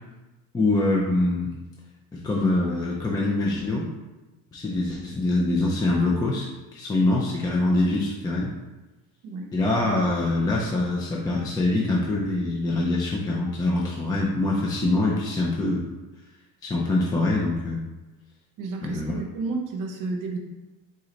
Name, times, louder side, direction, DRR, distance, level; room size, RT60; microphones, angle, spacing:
voice 1, 0.5-1.5 2.1-3.9 4.5-8.5 9.5-15.9 16.6-17.8 18.8-19.1, left 2 dB, 10° left, -4 dB, 0.4 m, -24 dB
voice 2, 9.2-9.5 18.6-20.4, right 3 dB, 55° right, 3 dB, 0.8 m, -31 dB
3.8 x 3.1 x 3.9 m, 1.1 s
cardioid pair, 140°, 39 cm